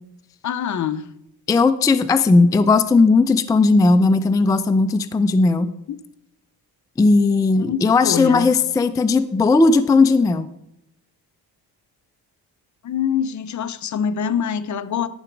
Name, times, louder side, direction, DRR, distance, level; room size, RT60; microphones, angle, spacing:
voice 1, 0.4-1.1 5.9-6.0 7.6-8.5 12.8-15.1, left 8 dB, 50° left, 0.7 m, -25 dB
voice 2, 1.5-5.7 7.0-10.5, left 3 dB, 10° left, 0.3 m, -16 dB
13.0 x 6.0 x 4.5 m
cardioid pair, 115°, 38 cm